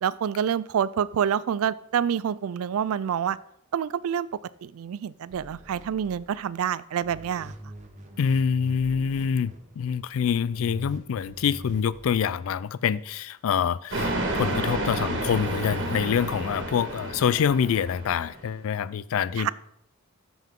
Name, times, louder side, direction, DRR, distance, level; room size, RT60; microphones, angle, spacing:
voice 1, 0.0-3.4 3.7-4.3 4.6-7.5 19.4-19.5, right 8 dB, 80° right, 0.3 m, -27 dB
sound 1, 5.3-6.7 7.0-9.9 10.4-12.1, right 1 dB, 35° right, 1.1 m, -44 dB
voice 2, 8.2-19.5, left 7 dB, 70° left, 0.3 m, -26 dB
sound 2, 13.9-18.4, right 2 dB, 60° right, 1.6 m, -30 dB
13.0 x 5.6 x 3.7 m
head